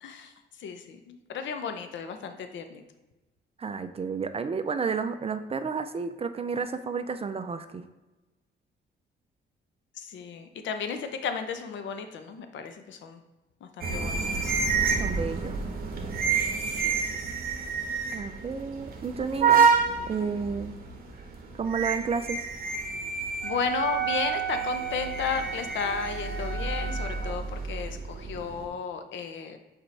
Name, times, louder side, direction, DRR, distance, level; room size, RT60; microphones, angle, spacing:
voice 1, 0.0-2.8 9.9-13.2 13.6-14.5 16.7-17.2 23.4-29.6, left 6 dB, 70° left, 7 dB, 0.7 m, -34 dB
voice 2, 3.6-7.8 15.0-15.6 18.1-19.7 20.1-20.7 21.5-22.4, right 5 dB, 30° right, 9 dB, 0.4 m, -31 dB
sound 1, 13.8-28.7, right 5 dB, 50° right, 1.1 m, -29 dB
Wind instrument woodwind instrument, 23.4-27.3, right 8 dB, 20° left, 1.8 m, -33 dB
6.6 x 4.4 x 3.3 m, 1.1 s
cardioid pair, 90°, 20 cm